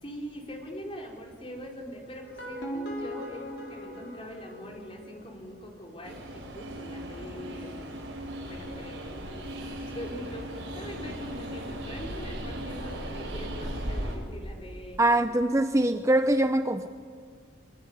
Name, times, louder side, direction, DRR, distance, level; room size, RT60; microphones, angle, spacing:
voice 1, 0.0-7.8 8.5-15.0, equal, 30° left, 0 dB, 4.8 m, -42 dB
sound 1, 2.2-5.3, equal, 60° left, 4.7 m, -39 dB
Train, 6.0-14.2, equal, 85° right, 6.9 m, -37 dB
voice 2, 15.0-16.9, right 1 dB, 15° right, 8 dB, 0.7 m, -23 dB
25.0 x 24.0 x 9.9 m, 2.1 s
head